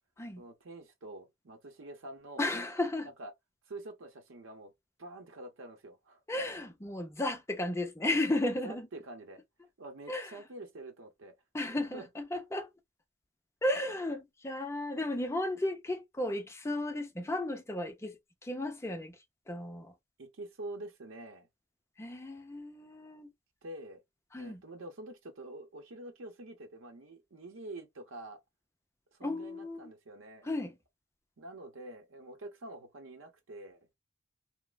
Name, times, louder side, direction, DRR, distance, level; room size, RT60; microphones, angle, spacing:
voice 1, 0.4-2.4 3.2-3.3 3.7-4.7 5.0-6.2 8.6-9.4 9.8-11.3 11.9-12.1 20.2-21.5 23.6-24.0 24.4-28.4 29.2-30.5 31.4-33.9, right 2 dB, 80° right, 0.8 m, -46 dB
voice 2, 2.4-3.1 6.3-8.9 10.1-10.4 11.5-12.7 13.6-19.2 19.5-19.9 22.0-23.3 24.3-24.6 29.2-29.9 30.4-30.7, left 1 dB, 15° left, 0.4 m, -34 dB
3.0 x 2.0 x 2.3 m
head